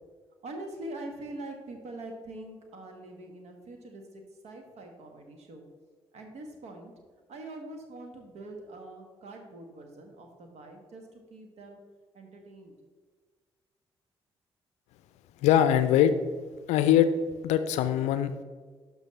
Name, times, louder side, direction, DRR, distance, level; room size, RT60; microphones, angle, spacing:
voice 1, 0.4-5.7 6.1-6.9 7.3-11.8 12.1-12.7, right 1 dB, 55° right, 4 dB, 1.4 m, -44 dB
voice 2, 15.4-16.1 16.7-17.1 17.4-18.4, left 11 dB, 60° left, 12 dB, 0.5 m, -22 dB
12.0 x 5.4 x 3.2 m, 1.5 s
figure-of-eight pair, 40°, 13 cm